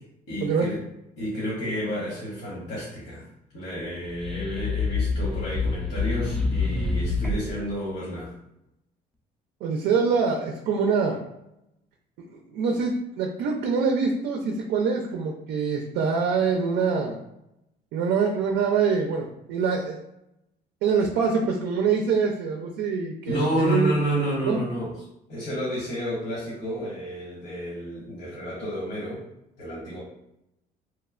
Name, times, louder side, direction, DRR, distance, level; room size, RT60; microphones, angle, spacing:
voice 1, 0.3-0.8 1.2-3.3 3.5-8.3 23.3-24.9 25.3-29.2 29.6-30.0, equal, 65° left, -7 dB, 1.2 m, -30 dB
sound 1, 3.9-7.6, left 4 dB, 5° left, 0.4 m, -27 dB
voice 2, 9.6-11.2 12.2-17.2 17.9-20.0 20.8-23.9 24.5-24.6, right 5 dB, 75° right, 1 dB, 0.4 m, -25 dB
3.0 x 2.1 x 2.3 m, 0.86 s
cardioid pair, 110°, 17 cm